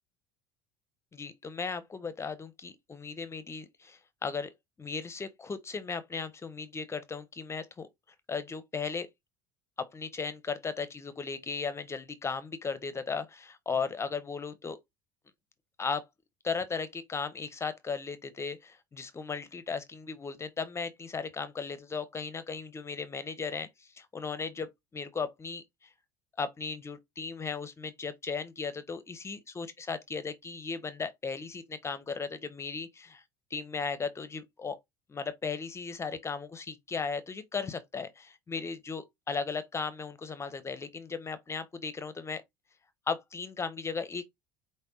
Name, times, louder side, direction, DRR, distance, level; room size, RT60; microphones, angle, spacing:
voice 1, 1.1-4.5 4.8-7.9 8.3-9.1 9.8-14.8 15.8-16.0 16.4-25.9 26.4-33.2 33.5-34.8 35.1-42.4 43.1-44.3, left 5 dB, 25° left, 0.6 m, -36 dB
5.2 x 2.1 x 3.6 m
hypercardioid pair, 75°, 11 cm